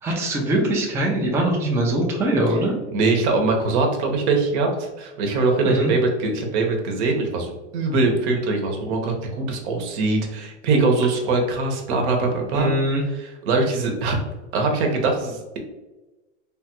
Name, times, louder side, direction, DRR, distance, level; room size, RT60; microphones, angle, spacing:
voice 1, 0.0-2.7 5.6-5.9 12.5-13.0, right 1 dB, 5° right, -2 dB, 0.4 m, -22 dB
voice 2, 2.9-12.7 13.1-14.2 14.5-15.6, right 3 dB, 65° right, 2 dB, 0.9 m, -22 dB
3.3 x 2.3 x 2.9 m, 1.1 s
hypercardioid pair, 115°, 37 cm